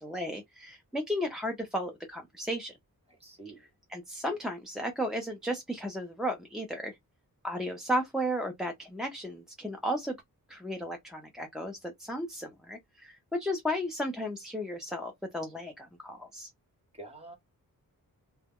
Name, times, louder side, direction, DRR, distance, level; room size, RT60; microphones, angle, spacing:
voice 1, 0.0-2.7 3.9-7.0 7.4-10.1 10.5-16.5, equal, ahead, 0.4 m, -34 dB
voice 2, 3.2-3.6 17.0-17.4, right 2 dB, 15° right, 1.0 m, -46 dB
2.2 x 2.0 x 3.5 m
wide cardioid pair, 135°, 35 cm